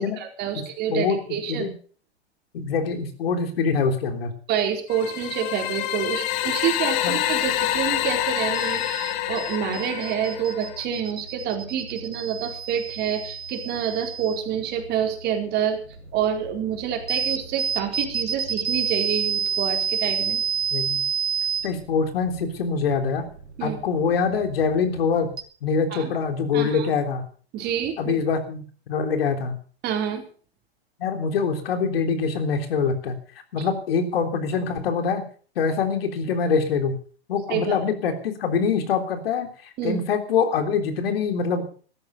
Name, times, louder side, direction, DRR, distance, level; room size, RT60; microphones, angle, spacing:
voice 1, 0.0-1.7 4.5-15.8 16.1-20.4 23.6-23.8 25.9-26.1 26.5-26.9 27.5-28.2 29.8-30.2 33.6-33.7 37.5-37.8 39.8-40.0, right 8 dB, 30° right, 3 dB, 4.4 m, -27 dB
voice 2, 0.9-1.7 2.5-4.3 7.0-7.1 20.7-21.0 21.6-23.2 23.6-25.3 25.6-27.2 28.0-29.6 31.0-33.2 33.5-35.2 35.6-37.0 37.3-41.7, left 5 dB, 60° left, 6 dB, 3.6 m, -24 dB
sound 1, 4.9-10.8, left 13 dB, 45° left, 1.6 m, -27 dB
sound 2, 7.2-25.4, right 7 dB, 90° right, 3.1 m, -31 dB
16.0 x 13.5 x 5.7 m, 0.43 s
hypercardioid pair, 115°, 32 cm